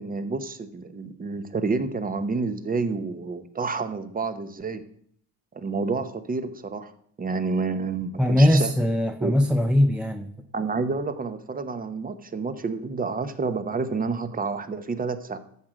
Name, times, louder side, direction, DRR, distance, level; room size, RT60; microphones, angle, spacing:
voice 1, 0.0-4.8 5.5-6.9 7.2-8.7 9.2-9.4 10.5-15.4, right 4 dB, 20° right, 0.8 m, -29 dB
voice 2, 8.2-10.3, left 1 dB, 5° right, 0.4 m, -20 dB
14.0 x 6.1 x 5.0 m
cardioid pair, 115°, 44 cm